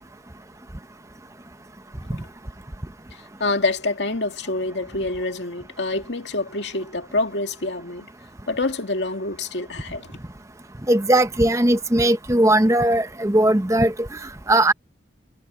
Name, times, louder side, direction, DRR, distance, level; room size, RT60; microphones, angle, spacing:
voice 1, 3.4-8.1 8.5-10.2, left 2 dB, 85° left, 2.2 m, -26 dB
voice 2, 10.9-14.1 14.5-14.7, right 1 dB, 15° right, 0.9 m, -18 dB
head